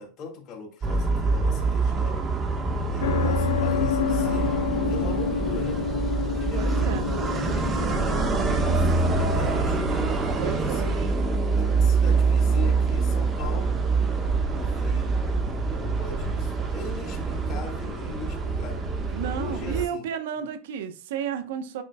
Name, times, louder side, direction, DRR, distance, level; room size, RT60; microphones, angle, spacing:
voice 1, 0.0-2.3 2.9-4.5 4.9-5.9 6.2-8.3 8.6-9.8 10.4-11.0 11.6-13.8 14.5-15.1 15.7-18.9 19.3-20.1, left 4 dB, 40° left, 2.0 m, -40 dB
sound 1, 0.8-19.9, right 4 dB, 25° right, 1.4 m, -25 dB
sound 2, 3.0-10.5, left 8 dB, 90° left, 0.5 m, -30 dB
voice 2, 6.5-7.1 10.4-10.9 19.1-21.8, right 8 dB, 80° right, 1.0 m, -32 dB
8.7 x 5.4 x 2.3 m
supercardioid pair, 120°, 0 cm